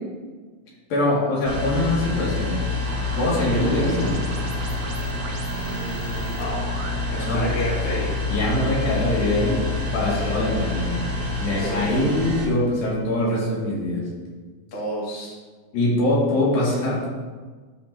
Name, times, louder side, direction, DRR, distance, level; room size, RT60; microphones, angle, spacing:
voice 1, 0.9-2.6 3.2-4.2 7.3-7.4 8.3-9.7 9.9-11.1 11.4-14.1 15.7-17.1, left 1 dB, 70° left, -5 dB, 3.8 m, -23 dB
sound 1, 1.4-12.5, left 2 dB, 35° right, 1.2 m, -27 dB
sound 2, 2.8-7.4, right 4 dB, 85° right, 1.4 m, -41 dB
voice 2, 5.5-6.6 7.1-8.1 10.1-10.3 11.6-11.9 14.7-15.3, equal, 30° left, -6 dB, 1.8 m, -31 dB
12.5 x 6.7 x 2.7 m, 1.4 s
omnidirectional pair, 4.2 m